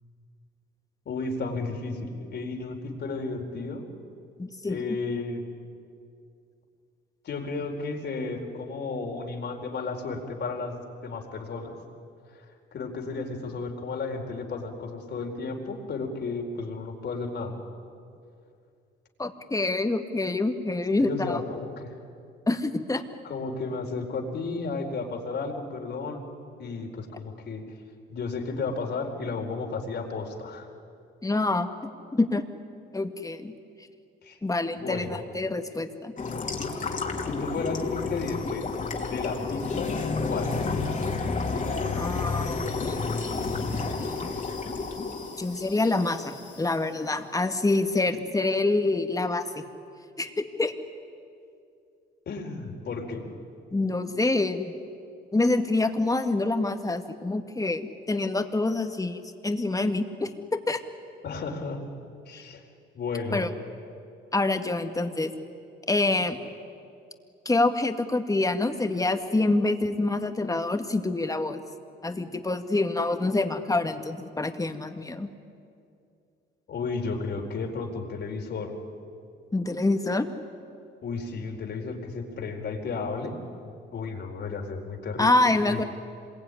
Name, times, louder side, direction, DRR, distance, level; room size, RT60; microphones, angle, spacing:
voice 1, 1.1-3.8 4.6-5.4 7.2-11.7 12.7-17.5 21.0-21.9 23.2-26.3 26.6-27.6 28.1-30.7 34.2-34.4 34.8-35.2 37.2-38.7 39.0-39.9 40.3-41.0 52.3-53.2 61.2-61.8 62.3-62.6 62.9-63.5 76.7-78.7 81.0-83.4 83.6-85.3 85.7-85.9, left 4 dB, 60° left, 2 dB, 4.4 m, -33 dB
voice 2, 4.4-5.0 19.2-21.4 22.5-23.0 31.2-31.7 32.1-32.4 32.9-33.5 34.4-36.1 41.9-43.0 43.4-44.3 45.4-49.6 50.2-50.7 53.7-54.7 55.3-60.8 62.3-62.4 63.3-63.5 64.3-65.3 65.9-66.4 67.5-71.6 72.0-75.3 79.5-80.3 85.2-85.8, left 2 dB, 15° left, 7 dB, 2.0 m, -26 dB
sound 1, 36.2-46.6, left 4 dB, 40° left, 3.2 m, -31 dB
26.5 x 22.0 x 9.9 m, 2.5 s
cardioid pair, 90°, 20 cm